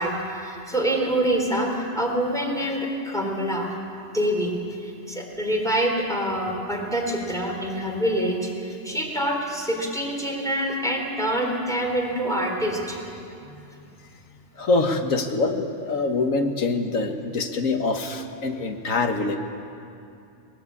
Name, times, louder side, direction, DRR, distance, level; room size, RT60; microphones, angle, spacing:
voice 1, 0.0-3.7 4.1-4.5 4.8-13.0, right 1 dB, ahead, 0 dB, 3.7 m, -26 dB
voice 2, 13.5-13.9 14.6-19.4, left 3 dB, 90° left, 5 dB, 1.8 m, -25 dB
19.5 x 19.5 x 8.5 m, 2.6 s
omnidirectional pair, 1.3 m